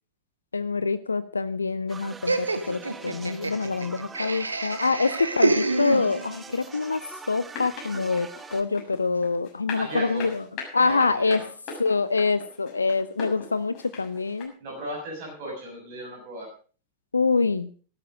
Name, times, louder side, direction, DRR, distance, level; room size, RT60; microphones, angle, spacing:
voice 1, 0.5-7.0 7.3-10.4 10.7-11.4 11.8-14.5 17.1-17.7, left 4 dB, 80° left, 15 dB, 0.7 m, -25 dB
sound 1, 1.9-8.6, right 4 dB, 15° right, 1.1 m, -43 dB
Laughter, 2.3-6.5, right 3 dB, 80° right, 1.1 m, -27 dB
sound 2, 7.5-14.4, left 5 dB, 40° left, 6.8 m, -39 dB
voice 2, 9.8-10.3 10.8-11.5 14.6-16.5, right 1 dB, 45° right, -1 dB, 7.2 m, -36 dB
15.0 x 12.5 x 5.1 m, 0.40 s
figure-of-eight pair, 90°, 0 cm